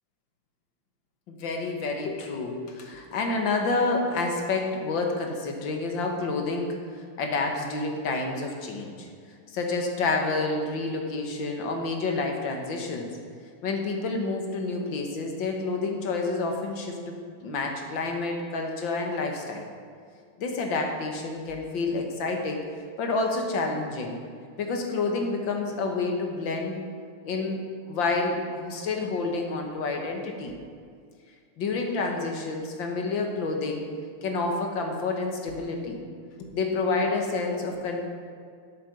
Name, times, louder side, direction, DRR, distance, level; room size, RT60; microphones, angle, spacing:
voice 1, 1.3-6.8 7.2-9.1 9.5-13.1 13.6-17.1 17.4-19.7 20.4-22.6 23.0-24.2 24.6-26.8 27.2-27.6 27.9-30.5 31.6-33.9 34.2-36.0 36.4-38.0, left 3 dB, 60° left, 2 dB, 2.0 m, -29 dB
8.4 x 8.0 x 6.6 m, 2.2 s
omnidirectional pair, 2.4 m